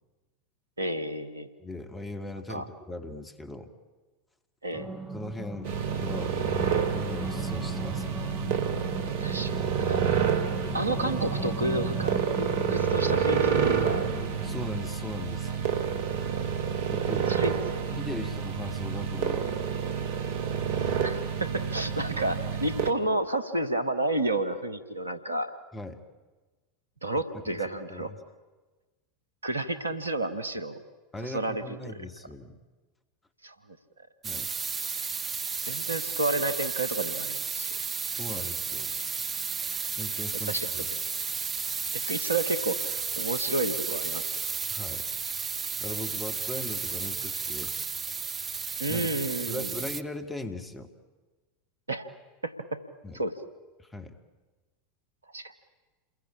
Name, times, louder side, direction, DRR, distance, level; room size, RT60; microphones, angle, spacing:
voice 1, 0.8-1.5 2.5-2.7 4.6-4.9 9.2-9.6 9.9-10.0 10.7-14.0 17.3-17.8 18.2-18.3 21.0-25.5 27.0-28.1 29.4-30.8 31.2-32.0 33.4-33.5 35.6-37.7 40.5-40.7 41.9-44.3 48.8-49.7 51.9-52.1 52.4-52.8 53.1-53.3 55.3-55.5, right 2 dB, 80° right, 10 dB, 1.6 m, -31 dB
voice 2, 1.6-3.7 5.1-5.7 6.0-8.1 14.4-15.5 16.9-17.6 17.9-19.5 25.7-26.0 27.1-27.6 27.9-28.2 31.1-32.6 34.2-34.5 38.0-39.0 40.0-40.9 44.7-45.1 45.8-47.9 48.9-49.1 49.5-50.9 53.0-53.2 53.8-54.2, left 2 dB, 15° left, 6 dB, 2.7 m, -39 dB
sound 1, 4.7-14.7, right 2 dB, 5° right, 2.8 m, -37 dB
sound 2, 5.6-22.9, right 7 dB, 55° right, 2.2 m, -29 dB
sound 3, 34.2-50.0, right 5 dB, 20° right, 1.3 m, -33 dB
29.0 x 22.0 x 8.8 m, 1.3 s
figure-of-eight pair, 80°, 0 cm